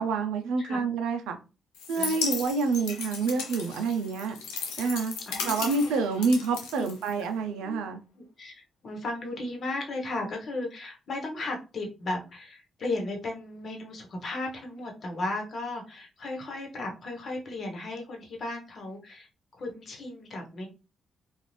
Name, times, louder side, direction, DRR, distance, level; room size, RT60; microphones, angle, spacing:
voice 1, 0.0-1.4 1.9-4.4 4.8-5.2 5.4-8.0, right 4 dB, 80° right, 7 dB, 0.4 m, -28 dB
sound 1, 1.7-7.5, left 5 dB, 85° left, 0.6 m, -36 dB
voice 2, 2.0-2.6 5.3-6.0 6.7-6.8 7.6-7.8 8.2-19.3 19.5-20.7, left 2 dB, 55° left, 1 dB, 1.1 m, -35 dB
2.5 x 2.4 x 3.2 m, 0.31 s
supercardioid pair, 50°, 0 cm